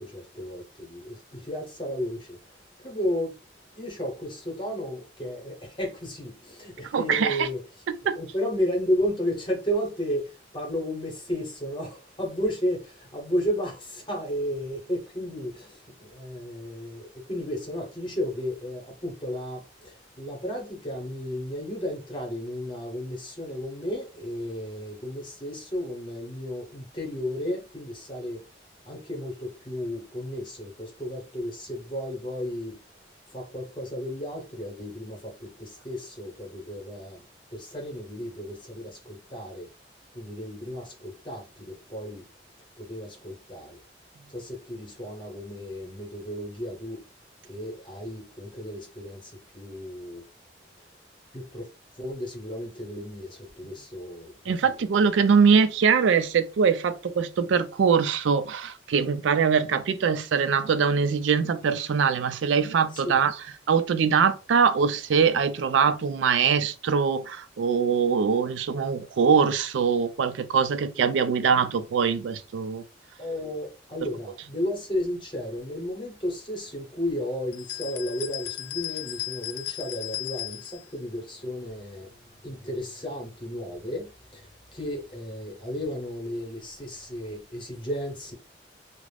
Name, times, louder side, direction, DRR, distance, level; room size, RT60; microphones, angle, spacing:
voice 1, 0.0-3.3 3.7-7.6 8.1-28.4 28.8-32.8 33.3-37.2 37.5-39.7 40.1-42.2 42.8-43.8 44.3-47.0 47.4-50.2 50.8-50.9 51.3-51.7 51.9-54.9 62.9-63.2 73.2-88.3, equal, 25° left, 0.8 m, -33 dB
voice 2, 6.9-7.4 8.1-8.2 54.5-63.3 63.7-72.8, right 6 dB, 85° right, 0.4 m, -23 dB
sound 1, 77.5-80.9, left 16 dB, 65° left, 0.3 m, -35 dB
2.4 x 2.0 x 3.2 m
head